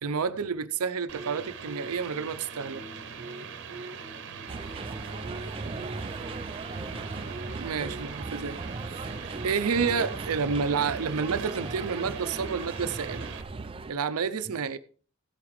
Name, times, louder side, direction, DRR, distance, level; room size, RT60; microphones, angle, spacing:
voice 1, 0.0-2.8 7.6-8.6 8.9-9.1 9.4-13.3 13.9-14.8, right 5 dB, 85° right, 0.6 m, -29 dB
sound 1, 1.1-13.4, right 5 dB, 55° right, 1.0 m, -40 dB
sound 2, 4.5-13.9, right 3 dB, 25° right, 0.4 m, -38 dB
voice 2, 4.7-7.3 14.4-14.5, right 2 dB, 25° left, 3.8 m, -44 dB
15.5 x 8.6 x 3.2 m
head